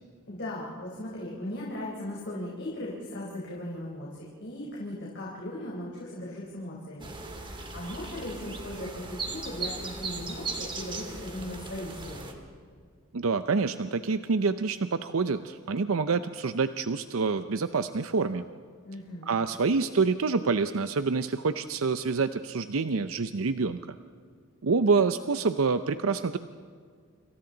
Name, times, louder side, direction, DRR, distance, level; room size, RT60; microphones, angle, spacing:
voice 1, 0.3-7.1 7.4-12.4 18.8-19.4 24.9-25.0, left 1 dB, 60° left, -4 dB, 4.1 m, -38 dB
sound 1, 7.0-12.3, right 3 dB, 25° right, 2.5 m, -38 dB
voice 2, 13.1-18.4 19.3-24.0 24.6-26.4, right 4 dB, 80° right, 10 dB, 0.6 m, -27 dB
29.0 x 27.0 x 4.0 m, 2.1 s
head